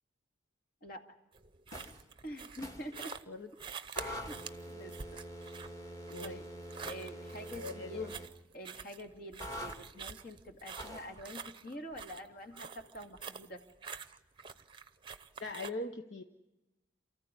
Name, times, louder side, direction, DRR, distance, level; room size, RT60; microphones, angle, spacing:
sound 1, 1.3-15.7, right 6 dB, 25° right, 0.7 m, -47 dB
sound 2, 1.7-2.0 2.6-2.9 3.9-8.3 9.4-9.8 10.8-11.1, equal, 20° left, 1.8 m, -45 dB
voice 1, 2.2-3.1 4.0-4.4 4.6-4.9 6.2-6.5 6.7-8.1 8.5-13.6, equal, 50° left, 4 dB, 2.2 m, -46 dB
voice 2, 6.1-6.4 7.5-8.1 15.4-16.2, left 3 dB, 70° left, 5 dB, 1.1 m, -40 dB
28.5 x 14.5 x 9.7 m, 1.0 s
head